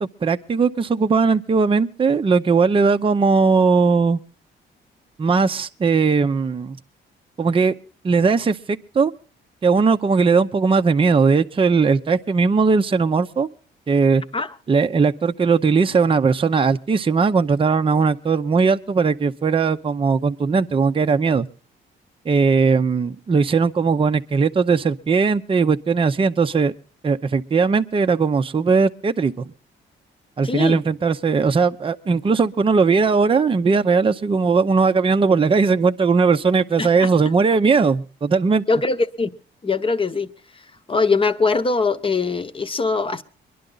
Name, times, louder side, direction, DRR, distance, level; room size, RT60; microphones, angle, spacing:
voice 1, 0.0-4.2 5.2-6.8 7.4-7.7 8.0-9.1 9.6-13.5 13.9-14.2 14.7-21.5 22.3-26.7 27.0-29.3 30.4-38.6, right 5 dB, 25° right, 0.6 m, -18 dB
voice 2, 30.4-30.8 36.8-37.1 38.7-39.3 39.6-40.3 40.9-43.2, left 4 dB, 25° left, 0.9 m, -21 dB
23.5 x 11.0 x 3.9 m
cardioid pair, 90°, 20 cm